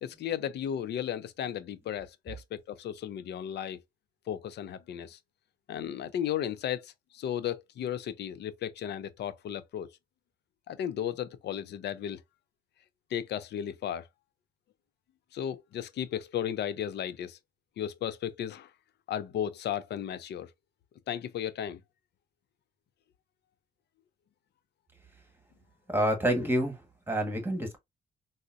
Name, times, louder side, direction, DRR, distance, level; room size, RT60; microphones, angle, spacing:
voice 1, 0.0-3.8 4.3-5.2 5.7-9.9 10.7-12.2 13.1-14.1 15.3-17.4 17.8-18.7 19.1-20.5 21.1-21.8, left 10 dB, 75° left, 0.5 m, -35 dB
voice 2, 25.9-27.8, right 1 dB, 10° right, 1.2 m, -28 dB
3.8 x 2.1 x 2.4 m
cardioid pair, 75°, 18 cm